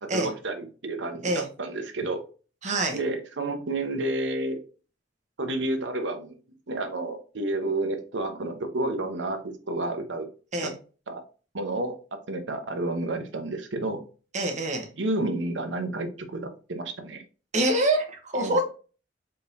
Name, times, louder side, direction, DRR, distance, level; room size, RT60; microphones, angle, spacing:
voice 1, 0.0-2.2 2.9-4.6 5.4-6.4 6.7-10.3 10.6-10.7 11.1-11.2 11.5-12.0 12.3-14.0 15.0-17.2 18.4-18.6, right 2 dB, 70° right, 7 dB, 0.8 m, -30 dB
voice 2, 2.6-3.0 10.5-10.7 14.3-14.9 17.5-18.6, right 1 dB, 40° right, 3 dB, 1.1 m, -25 dB
4.4 x 3.7 x 2.6 m, 0.35 s
head